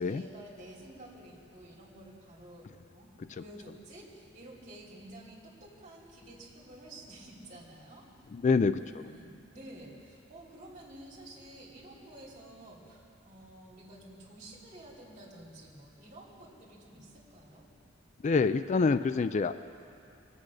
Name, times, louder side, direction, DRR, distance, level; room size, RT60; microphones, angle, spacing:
voice 1, 0.0-8.1 8.7-17.7, right 1 dB, 40° right, -3 dB, 3.0 m, -51 dB
voice 2, 8.3-8.8 18.2-19.6, left 4 dB, 40° left, 12 dB, 0.3 m, -26 dB
23.0 x 8.7 x 6.4 m, 2.9 s
head